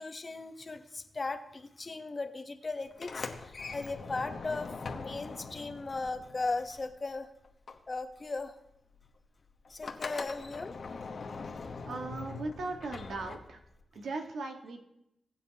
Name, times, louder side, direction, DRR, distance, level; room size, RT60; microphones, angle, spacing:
voice 1, 0.0-7.3 7.9-8.6 9.7-10.7, left 3 dB, 35° left, 7 dB, 0.9 m, -37 dB
Sliding door, 2.9-7.2 7.4-13.8, left 4 dB, 55° left, 1.1 m, -42 dB
voice 2, 11.8-13.6 13.9-14.8, right 3 dB, 85° right, 3 dB, 1.4 m, -38 dB
20.5 x 9.0 x 2.9 m, 0.85 s
wide cardioid pair, 105°, 0 cm